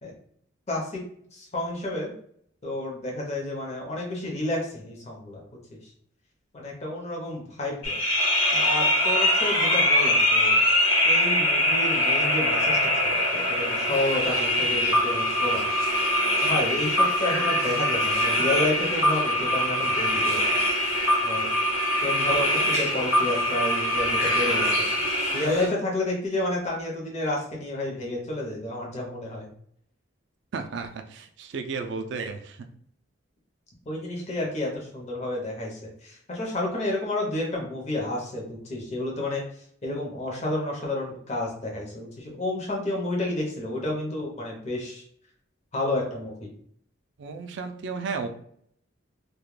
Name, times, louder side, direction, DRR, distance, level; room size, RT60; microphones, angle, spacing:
voice 1, 0.7-1.0 1.3-2.1 2.6-5.4 5.7-5.8 6.5-8.0 8.5-10.6 11.0-15.8 16.4-20.4 21.2-21.5 22.0-24.9 25.3-29.5 33.9-39.4 39.8-45.0 45.7-46.5, left 1 dB, 35° left, -1 dB, 0.6 m, -30 dB
sound 1, 7.8-25.7, left 1 dB, 75° left, 0.8 m, -23 dB
voice 2, 30.5-32.6 47.2-48.3, right 4 dB, 60° right, 6 dB, 0.3 m, -33 dB
2.3 x 2.1 x 3.1 m, 0.65 s
head